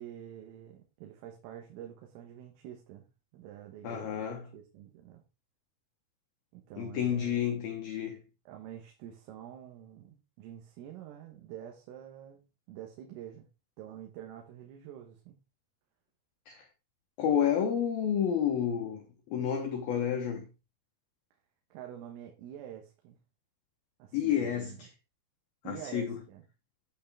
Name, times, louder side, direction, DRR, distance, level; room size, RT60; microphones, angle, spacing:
voice 1, 0.0-3.1 3.3-5.2 6.5-7.6 8.5-12.4 12.7-13.5 13.8-15.4 21.7-23.2 24.0-24.9 25.7-26.4, right 10 dB, 80° right, 3.9 m, -47 dB
voice 2, 3.8-4.5 6.8-8.2 16.5-16.7 17.2-19.0 19.3-20.5 24.1-24.9 25.6-26.2, left 9 dB, 85° left, 2.1 m, -30 dB
9.5 x 8.2 x 3.4 m
omnidirectional pair, 6.0 m